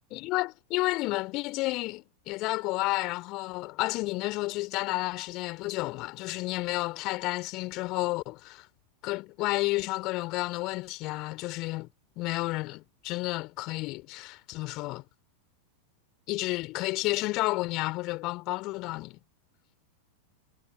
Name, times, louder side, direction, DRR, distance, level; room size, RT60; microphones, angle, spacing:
voice 1, 0.1-8.7 9.0-11.9 12.2-15.0 16.3-19.2, left 21 dB, 40° left, 3.8 m, -31 dB
figure-of-eight pair, 90°, 0 cm